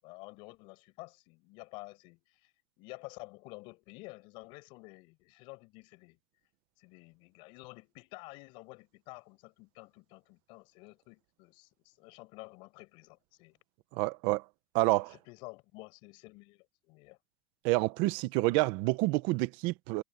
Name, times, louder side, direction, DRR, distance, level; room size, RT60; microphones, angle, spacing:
voice 1, 0.0-2.5 2.8-6.2 6.8-13.6 15.1-17.2, left 25 dB, 55° left, 7.4 m, -50 dB
voice 2, 13.9-14.4 14.7-15.1 17.6-20.0, right 21 dB, 55° right, 1.0 m, -28 dB
cardioid pair, 165°, 10 cm